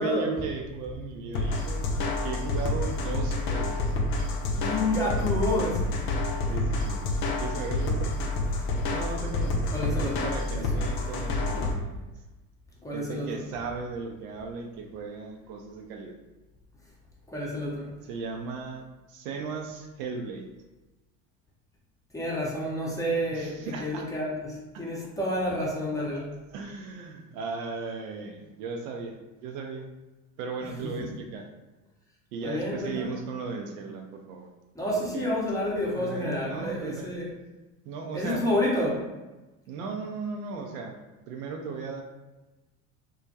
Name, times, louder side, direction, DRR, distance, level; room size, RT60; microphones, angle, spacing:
voice 1, 0.0-1.8 2.2-4.0 6.4-7.0 7.4-8.2 8.9-12.0 12.9-16.2 18.0-20.5 23.3-24.1 24.7-24.9 26.5-29.8 30.4-31.4 32.3-34.5 35.0-35.3 36.0-37.1 37.8-38.5 39.7-41.0 41.3-42.0, right 4 dB, 65° right, 3 dB, 0.5 m, -36 dB
sound 1, 1.3-11.7, left 2 dB, 60° left, 0.6 m, -28 dB
voice 2, 4.5-5.8 9.7-10.3 11.6-11.7 12.8-13.3 17.3-17.9 22.1-26.3 31.0-31.1 32.4-33.1 34.7-37.3 38.1-39.0, left 1 dB, 10° left, -5 dB, 0.7 m, -29 dB
2.3 x 2.1 x 2.7 m, 1.1 s
hypercardioid pair, 70°, 44 cm